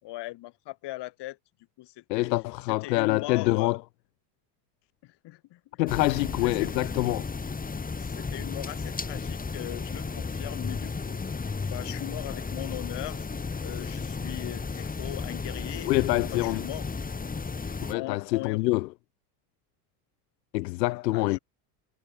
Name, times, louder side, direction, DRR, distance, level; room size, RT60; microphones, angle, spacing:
voice 1, 0.0-1.4 1.8-2.3 2.7-3.8 5.0-5.6 5.9-6.7 8.0-13.3 13.6-16.0 16.3-16.9 17.9-18.8 21.1-21.4, left 18 dB, 55° left, 5.7 m, -39 dB
voice 2, 2.1-3.8 5.8-7.2 15.9-16.6 17.9-18.9 20.5-21.4, left 21 dB, 85° left, 1.7 m, -26 dB
sound 1, 5.9-17.9, left 4 dB, 15° left, 5.0 m, -34 dB
supercardioid pair, 110°, 49 cm